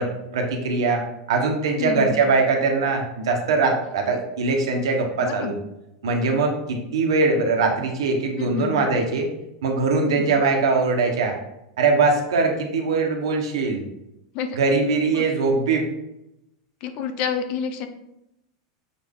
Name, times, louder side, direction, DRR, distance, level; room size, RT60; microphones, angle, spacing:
voice 1, 0.0-5.6 6.0-9.3 9.6-11.4 11.8-13.8 14.5-15.9, right 3 dB, 90° right, 2 dB, 1.5 m, -22 dB
voice 2, 1.8-2.1 5.2-5.5 8.4-8.8 10.1-10.3 14.3-14.6 15.1-15.3 16.8-17.9, left 7 dB, 45° left, 8 dB, 0.8 m, -28 dB
7.0 x 4.2 x 3.8 m, 0.87 s
supercardioid pair, 145°, 2 cm